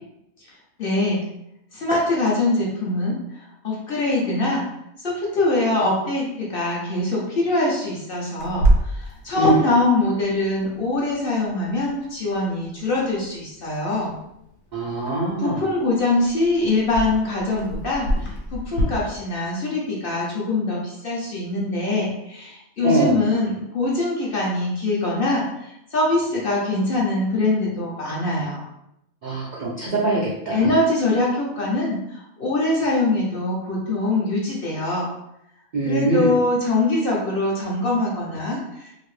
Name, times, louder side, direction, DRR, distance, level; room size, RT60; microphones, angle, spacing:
voice 1, 0.8-1.2 1.7-4.7 5.0-14.2 15.4-28.6 30.5-35.1 35.8-39.1, left 2 dB, 50° left, -4 dB, 0.8 m, -23 dB
Clock, 8.4-18.8, right 1 dB, 75° left, 1.1 m, -29 dB
voice 2, 14.7-15.6 22.8-23.2 29.2-30.8 35.7-36.3, right 2 dB, 70° right, -4 dB, 0.4 m, -23 dB
2.8 x 2.6 x 3.1 m, 0.80 s
omnidirectional pair, 1.5 m